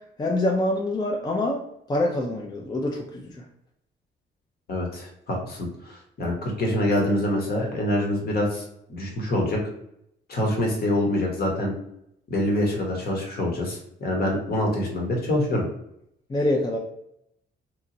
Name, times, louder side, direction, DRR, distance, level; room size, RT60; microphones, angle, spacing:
voice 1, 0.2-1.6 1.9-3.4 16.3-16.8, left 1 dB, 20° left, 0 dB, 0.4 m, -25 dB
voice 2, 4.7-8.6 8.9-9.6 10.3-11.7 12.3-15.6, left 1 dB, 50° left, 0 dB, 1.0 m, -25 dB
2.9 x 2.3 x 2.6 m, 0.77 s
cardioid pair, 90°, 20 cm